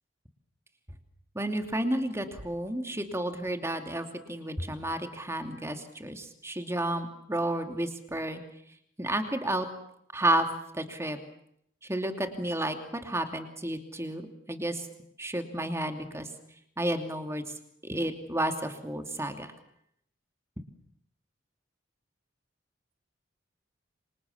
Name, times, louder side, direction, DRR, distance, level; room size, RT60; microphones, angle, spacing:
voice 1, 1.3-8.4 9.0-9.7 10.1-10.5 10.7-11.2 11.8-12.8 13.0-14.9 15.2-16.3 16.8-17.4 17.8-19.5, right 1 dB, 15° right, 6 dB, 2.7 m, -31 dB
28.5 x 26.0 x 7.2 m, 0.75 s
head